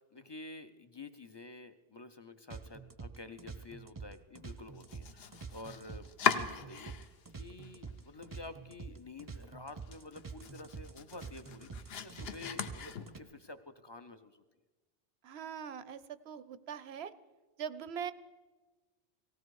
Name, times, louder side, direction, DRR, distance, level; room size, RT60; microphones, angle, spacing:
voice 1, 0.0-14.4, left 3 dB, 35° left, 9 dB, 0.4 m, -50 dB
sound 1, 2.5-13.2, right 5 dB, 25° right, 0.5 m, -47 dB
Domestic sounds home sounds, 4.7-7.3 7.6-8.4 8.7-8.8 9.3-9.4 9.7-13.4, left 7 dB, 70° left, 0.9 m, -38 dB
voice 2, 15.2-17.1 17.6-18.1, right 8 dB, 80° right, 15 dB, 0.9 m, -41 dB
18.0 x 16.0 x 4.7 m, 1.3 s
omnidirectional pair, 1.1 m